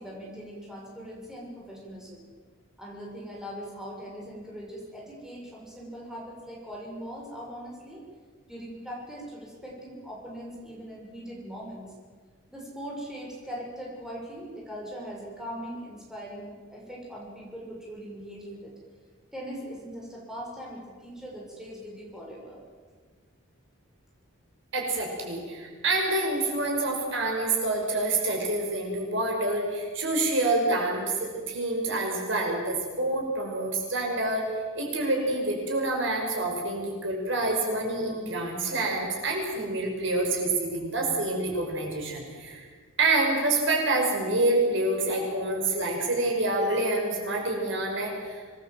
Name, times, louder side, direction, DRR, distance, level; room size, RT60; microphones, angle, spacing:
voice 1, 0.0-2.3 2.8-8.0 8.5-11.9 12.5-18.7 19.3-22.6, equal, 5° right, -4 dB, 6.9 m, -40 dB
voice 2, 24.7-34.5 34.7-42.6 43.0-48.4, right 2 dB, 60° right, 1 dB, 6.0 m, -27 dB
27.0 x 21.0 x 7.8 m, 1.6 s
head